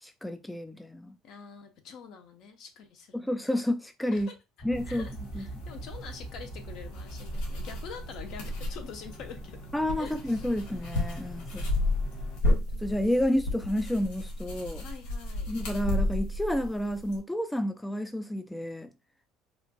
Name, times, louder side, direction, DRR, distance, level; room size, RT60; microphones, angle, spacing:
voice 1, 0.0-1.1 3.1-4.3 4.6-5.1 5.3-5.5 9.7-11.7 12.8-14.9 15.5-18.9, left 1 dB, 5° left, 0.3 m, -30 dB
voice 2, 1.2-3.5 4.1-4.3 4.8-9.6 10.0-10.4 11.5-12.2 14.8-15.5, left 6 dB, 65° left, 0.8 m, -46 dB
sound 1, 4.6-12.4, right 2 dB, 45° left, 1.9 m, -44 dB
sound 2, 4.7-17.2, left 1 dB, 85° left, 1.2 m, -33 dB
4.3 x 2.4 x 2.2 m
supercardioid pair, 105°, 0 cm